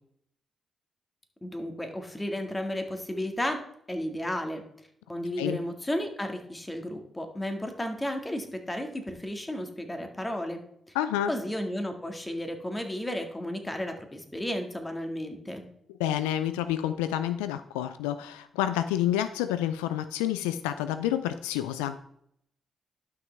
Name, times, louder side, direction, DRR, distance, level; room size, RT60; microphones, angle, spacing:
voice 1, 1.4-3.6 3.9-4.6 5.1-10.6 11.3-15.7, left 1 dB, 15° left, 5 dB, 1.9 m, -33 dB
voice 2, 10.9-11.3 16.0-22.0, left 11 dB, 90° left, 12 dB, 0.3 m, -29 dB
11.5 x 6.0 x 3.4 m, 0.71 s
hypercardioid pair, 40°, 0 cm